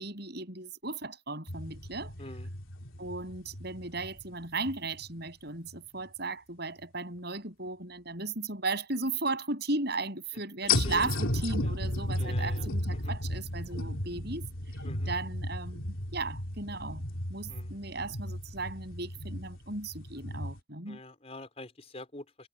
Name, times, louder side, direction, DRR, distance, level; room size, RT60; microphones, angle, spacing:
voice 1, 0.0-2.1 3.0-14.5 15.1-17.0 17.3-21.0, right 3 dB, 55° right, 8.0 m, -36 dB
sound 1, 1.5-5.2 5.7-5.8 10.7-20.6, left 2 dB, 85° left, 3.1 m, -34 dB
voice 2, 2.2-2.5 10.6-11.1 11.6-11.7 12.2-13.1 14.8-15.1 17.5-17.7 20.9-22.5, left 2 dB, 30° left, 4.6 m, -46 dB
head